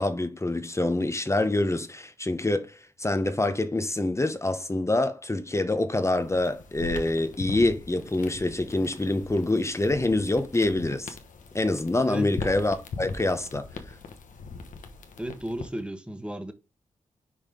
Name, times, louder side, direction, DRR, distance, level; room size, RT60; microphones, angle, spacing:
voice 1, 0.0-11.2 11.5-13.7, left 2 dB, 20° left, 0.9 m, -26 dB
sound 1, 6.1-15.9, left 4 dB, 75° left, 1.1 m, -40 dB
voice 2, 15.2-16.5, right 1 dB, 5° right, 1.3 m, -33 dB
5.5 x 4.9 x 3.7 m
cardioid pair, 55°, 13 cm